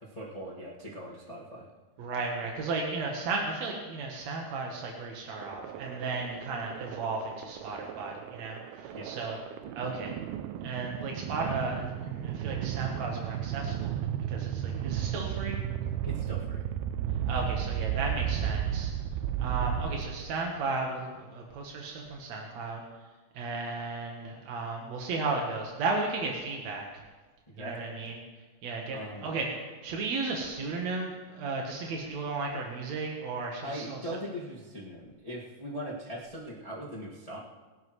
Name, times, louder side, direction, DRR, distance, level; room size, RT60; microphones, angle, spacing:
voice 1, 0.0-1.7 8.9-9.2 16.0-16.6 27.5-27.7 28.9-29.3 33.6-37.4, equal, 30° left, -6 dB, 0.6 m, -40 dB
voice 2, 2.0-9.4 9.8-10.2 10.6-13.9 14.3-15.6 17.3-18.9 19.4-22.8 23.3-27.0 27.6-28.2 28.6-29.6 29.8-34.0, right 3 dB, 60° right, 0 dB, 1.9 m, -34 dB
sound 1, 5.4-20.5, right 10 dB, 85° right, 2.3 m, -34 dB
22.5 x 11.5 x 3.2 m, 1.3 s
omnidirectional pair, 4.8 m